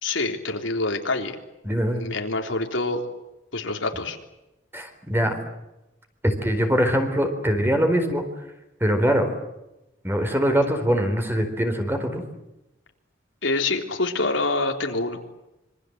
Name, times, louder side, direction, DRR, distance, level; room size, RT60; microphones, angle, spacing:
voice 1, 0.0-1.3 1.9-3.0 3.5-4.2 13.4-15.2, left 3 dB, 80° left, 4 dB, 3.6 m, -26 dB
voice 2, 1.6-2.1 4.7-5.4 6.2-8.2 8.8-9.3 10.0-12.2, equal, 10° right, 6 dB, 4.2 m, -22 dB
26.5 x 24.5 x 8.1 m, 0.94 s
head